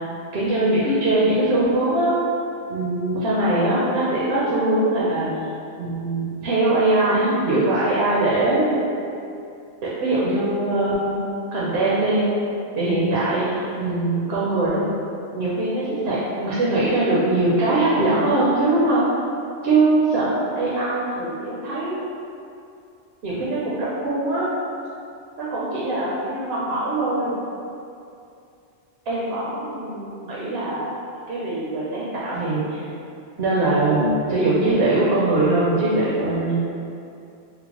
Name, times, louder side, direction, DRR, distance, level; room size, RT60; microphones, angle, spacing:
voice 1, 0.3-2.1 2.7-5.3 5.8-9.0 10.0-11.1 11.5-12.2 12.8-14.8 15.3-19.1 19.6-20.3 20.6-22.0 23.2-24.5 25.4-27.3 29.1-30.9 31.3-32.8 33.4-36.6, right 2 dB, 65° right, -7 dB, 0.8 m, -21 dB
3.7 x 2.1 x 2.9 m, 2.5 s
omnidirectional pair, 1.2 m